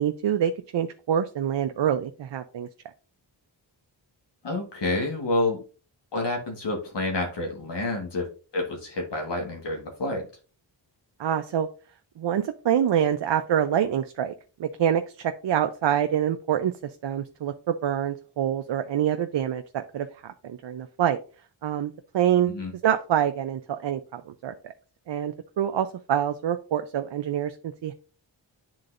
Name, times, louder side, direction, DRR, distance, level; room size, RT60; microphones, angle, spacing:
voice 1, 0.0-2.7 11.2-11.7 12.2-14.3 14.6-16.7 17.0-21.2 21.6-22.6 22.8-24.7 25.1-27.9, right 9 dB, 70° right, 7 dB, 0.6 m, -26 dB
voice 2, 4.4-5.6 6.1-8.3 8.5-10.3 22.5-22.7, left 2 dB, 60° left, 0 dB, 1.5 m, -28 dB
10.5 x 3.9 x 2.5 m, 0.37 s
wide cardioid pair, 80°, 46 cm